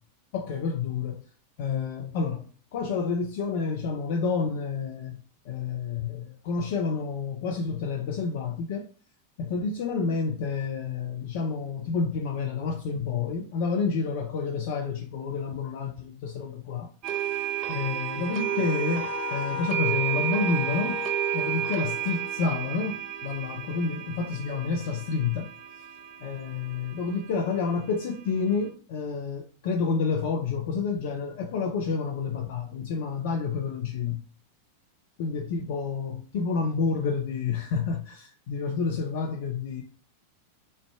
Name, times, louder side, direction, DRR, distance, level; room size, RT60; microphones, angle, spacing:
voice 1, 0.3-1.3 1.6-8.9 9.4-16.9 17.7-21.0 21.3-25.5 26.2-34.2 35.2-39.8, left 5 dB, 50° left, 0.4 m, -29 dB
sound 1, 17.0-28.6, right 13 dB, 40° right, 0.5 m, -32 dB
sound 2, 18.2-22.7, left 8 dB, 85° right, 1.2 m, -37 dB
3.8 x 3.2 x 2.3 m
figure-of-eight pair, 90°, 0 cm